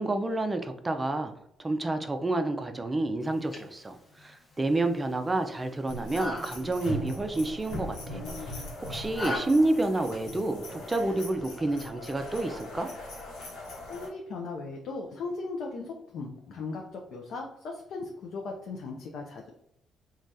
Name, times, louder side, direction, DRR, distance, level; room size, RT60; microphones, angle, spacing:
voice 1, 0.0-1.3 1.6-8.2 8.9-12.9, right 2 dB, 20° right, 7 dB, 0.4 m, -29 dB
sound 1, 3.2-9.4, left 1 dB, 20° left, 0.8 m, -41 dB
sound 2, 5.9-14.1, left 1 dB, 90° left, 1.0 m, -40 dB
voice 2, 13.9-19.5, left 3 dB, 70° left, 1 dB, 0.4 m, -37 dB
3.2 x 2.3 x 2.6 m, 0.78 s
cardioid pair, 90°, 0 cm